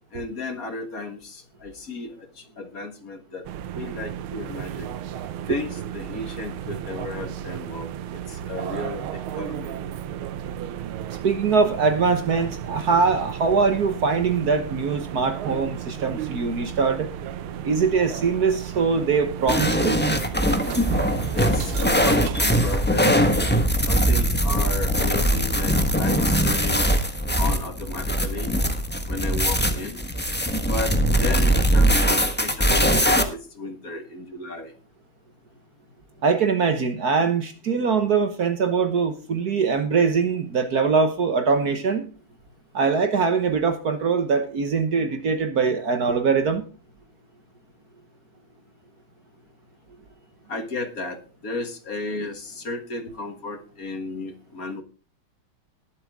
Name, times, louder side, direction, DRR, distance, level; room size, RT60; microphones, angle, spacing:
voice 1, 0.1-3.5 3.7-4.9 5.5-9.8 21.3-23.3 23.9-26.9 27.4-28.5 29.1-30.0 30.7-34.7 50.5-54.8, left 3 dB, 45° left, 7 dB, 1.9 m, -34 dB
sound 1, 3.4-22.5, right 10 dB, 80° right, 1.6 m, -34 dB
voice 2, 11.2-17.1 17.6-20.0 36.2-42.1 42.7-46.6, right 5 dB, 55° right, 8 dB, 1.5 m, -22 dB
sound 2, 19.5-33.2, equal, 5° left, 1.0 m, -21 dB
20.0 x 7.7 x 3.6 m, 0.36 s
omnidirectional pair, 2.3 m